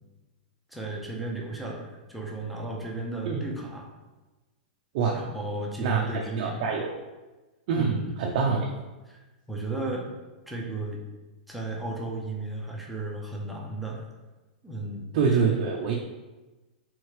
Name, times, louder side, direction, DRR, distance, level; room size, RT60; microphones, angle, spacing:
voice 1, 0.7-3.9 5.1-6.6 7.7-8.1 8.5-8.7 9.1-9.2 9.5-10.1 10.5-11.0 11.5-14.0 14.6-15.4, right 2 dB, ahead, -3 dB, 0.7 m, -34 dB
voice 2, 5.8-6.9 7.7-8.6 15.1-15.9, right 5 dB, 50° right, -1 dB, 0.5 m, -25 dB
3.5 x 3.1 x 4.7 m, 1.1 s
hypercardioid pair, 150°, 5 cm